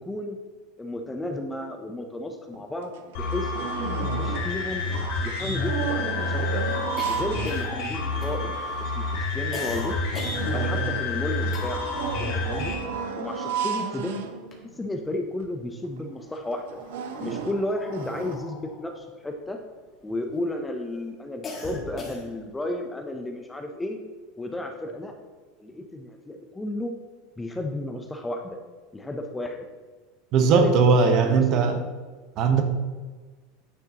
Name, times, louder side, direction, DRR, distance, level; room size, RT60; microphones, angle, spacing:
voice 1, 0.0-0.4 0.8-2.9 3.2-4.9 5.2-6.6 7.1-8.5 8.8-10.0 10.5-11.8 12.2-12.7 13.2-14.2 14.8-16.8 17.2-19.6 20.0-24.0 24.4-25.2 25.6-26.9 27.4-28.6 28.9-29.6 30.4-30.7 31.1-31.9, left 1 dB, 10° left, 4 dB, 0.5 m, -33 dB
sound 1, 2.5-2.6 2.9-4.6 4.9-8.1 8.7-8.8 9.1-9.2 9.7-14.9 15.4-15.5 15.8-16.0 16.5-18.4, right 6 dB, 85° right, 0.8 m, -33 dB
sound 2, 3.1-12.7, left 3 dB, 60° left, 2.3 m, -29 dB
sound 3, 5.2-12.1 12.3-13.9 14.3-15.2 15.9-20.4 20.8-22.6, left 3 dB, 25° left, 1.4 m, -42 dB
voice 2, 30.3-31.8 32.4-32.6, right 5 dB, 40° right, 7 dB, 0.9 m, -19 dB
9.7 x 6.7 x 2.8 m, 1.3 s
supercardioid pair, 160°, 0 cm